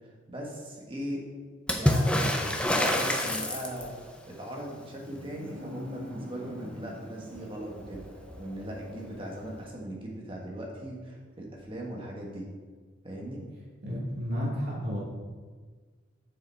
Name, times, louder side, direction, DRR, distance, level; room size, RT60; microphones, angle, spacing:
voice 1, 0.3-1.2 1.7-8.0 8.4-12.5 13.0-13.4, equal, 25° right, -2 dB, 1.5 m, -39 dB
Water / Splash splatter, 1.7-4.1 7.4-7.5 7.7-8.5 9.6-9.7, left 1 dB, 5° left, 0.6 m, -27 dB
sound 1, 2.6-3.7 4.8-9.3, left 1 dB, 70° right, 1.4 m, -45 dB
voice 2, 13.8-15.0, equal, 50° right, -5 dB, 2.5 m, -31 dB
6.9 x 6.6 x 4.5 m, 1.5 s
head